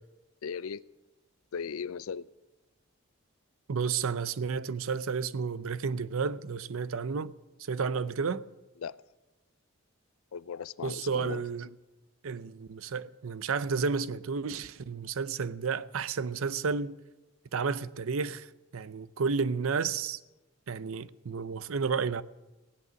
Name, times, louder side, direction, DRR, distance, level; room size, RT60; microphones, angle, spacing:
voice 1, 0.4-0.8 1.5-2.3 8.8-9.0 10.3-11.5, left 6 dB, 80° left, 0.4 m, -37 dB
voice 2, 3.7-7.3 7.7-8.4 10.8-11.7 12.2-16.9 17.5-18.5 18.7-20.2 20.7-22.2, right 5 dB, 75° right, 0.5 m, -31 dB
16.5 x 11.0 x 6.3 m
head